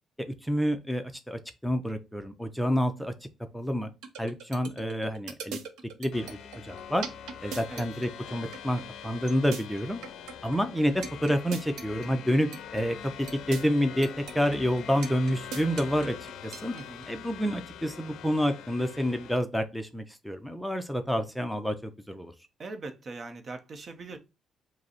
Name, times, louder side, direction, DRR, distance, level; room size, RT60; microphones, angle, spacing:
voice 1, 0.3-3.1 3.5-3.9 4.2-5.6 6.0-6.4 6.6-7.1 7.4-10.0 10.4-16.2 16.4-16.7 17.1-22.3, equal, ahead, 0.5 m, -28 dB
sound 1, 4.0-17.1, right 6 dB, 90° right, 0.6 m, -39 dB
sound 2, 6.1-19.4, left 9 dB, 75° left, 0.4 m, -44 dB
voice 2, 16.7-17.1 22.6-24.2, right 3 dB, 45° right, 0.7 m, -41 dB
5.0 x 2.0 x 4.2 m
cardioid pair, 90°, 0 cm